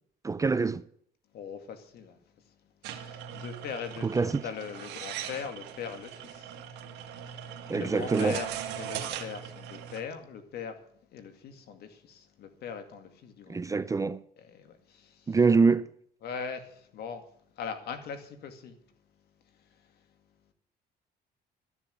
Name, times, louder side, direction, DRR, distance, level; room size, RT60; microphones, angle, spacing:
voice 1, 0.2-0.8 4.0-4.4 7.7-8.4 13.5-14.2 15.3-15.9, right 4 dB, 20° right, 0.5 m, -25 dB
voice 2, 1.3-13.8 14.4-15.4 16.2-17.2 17.5-18.8 19.4-20.1, left 6 dB, 70° left, 2.2 m, -41 dB
sound 1, 2.8-10.0, right 9 dB, 90° right, 1.6 m, -40 dB
13.0 x 7.2 x 9.2 m
cardioid pair, 110°, 17 cm